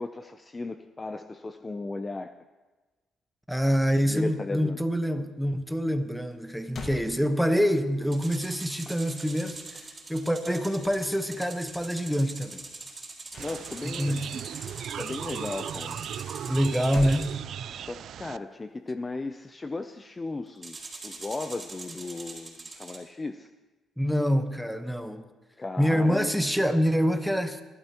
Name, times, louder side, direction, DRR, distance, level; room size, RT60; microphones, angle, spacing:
voice 1, 0.0-2.3 4.1-4.8 13.4-14.4 15.0-16.0 17.9-20.8 21.0-23.5 25.6-26.3, left 3 dB, 25° left, 9 dB, 0.5 m, -36 dB
voice 2, 3.5-12.6 13.8-14.3 16.5-17.3 24.0-25.2 25.8-27.6, equal, ahead, 7 dB, 1.1 m, -26 dB
sound 1, 6.3-6.4 6.7-7.9 13.3-14.2 16.5-18.1, left 3 dB, 50° left, 1.8 m, -41 dB
sound 2, 8.1-17.4 20.6-23.0, right 3 dB, 30° right, 3.9 m, -43 dB
sound 3, 13.4-18.4, right 9 dB, 70° right, 0.4 m, -37 dB
22.5 x 12.5 x 3.0 m, 1.2 s
cardioid pair, 90°, 0 cm